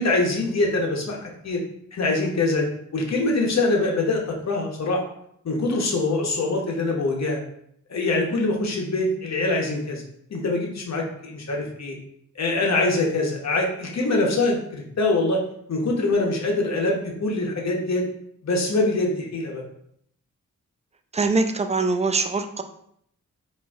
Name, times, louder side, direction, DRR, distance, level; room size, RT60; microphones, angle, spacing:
voice 1, 0.0-1.6 1.9-2.7 2.9-5.0 5.4-7.4 7.9-10.0 10.3-12.0 12.4-15.4 15.7-18.1 18.4-19.6, left 2 dB, 55° left, 0 dB, 0.9 m, -24 dB
voice 2, 21.1-22.6, right 3 dB, 20° right, 7 dB, 0.3 m, -23 dB
4.2 x 2.5 x 2.4 m, 0.69 s
cardioid pair, 55°, 32 cm